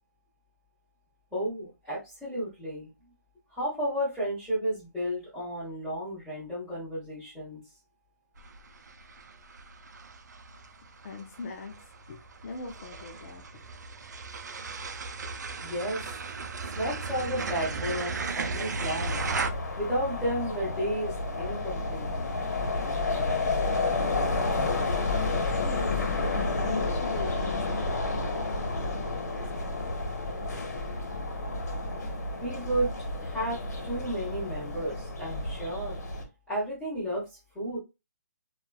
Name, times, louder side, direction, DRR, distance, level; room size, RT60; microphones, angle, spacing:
voice 1, 1.3-2.9 3.5-7.6 15.6-16.0 16.8-19.2 19.8-22.1 31.7-31.8 32.4-32.9 33.2-36.0 36.5-37.2 37.5-37.8, equal, 5° left, 1.0 m, -32 dB
sound 1, 8.4-19.5, right 4 dB, 80° right, 0.5 m, -36 dB
voice 2, 11.0-13.7 23.2-30.1, left 3 dB, 50° left, 0.5 m, -43 dB
sound 2, 19.0-36.2, left 3 dB, 75° left, 1.1 m, -30 dB
3.0 x 2.4 x 2.2 m
hypercardioid pair, 160°, 9 cm